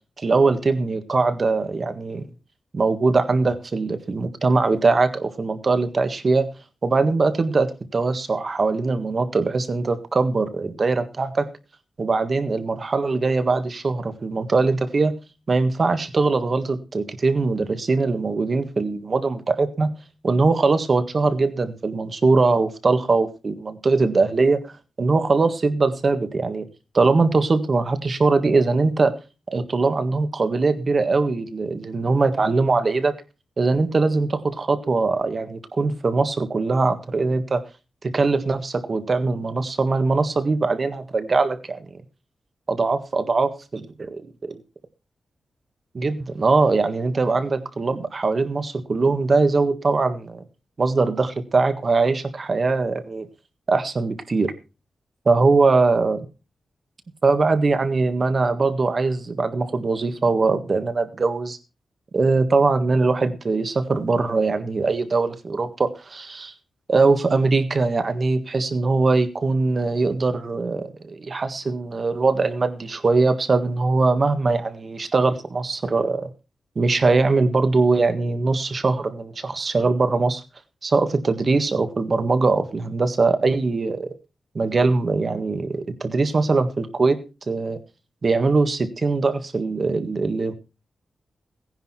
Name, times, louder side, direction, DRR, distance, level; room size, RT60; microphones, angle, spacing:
voice 1, 0.2-2.3 2.7-6.4 6.8-11.5 12.0-15.1 15.5-19.9 20.2-24.6 25.0-26.6 26.9-29.1 29.5-33.1 33.6-37.6 38.0-41.8 42.7-43.8 45.9-50.4 50.8-53.3 53.7-54.5 55.2-56.3 57.2-61.6 62.1-66.5 66.9-76.3 76.7-80.4 80.8-84.1 84.5-87.2 87.5-87.8 88.2-90.5, right 3 dB, 35° right, 9 dB, 1.6 m, -21 dB
17.5 x 10.5 x 4.4 m, 0.32 s
wide cardioid pair, 165°, 0 cm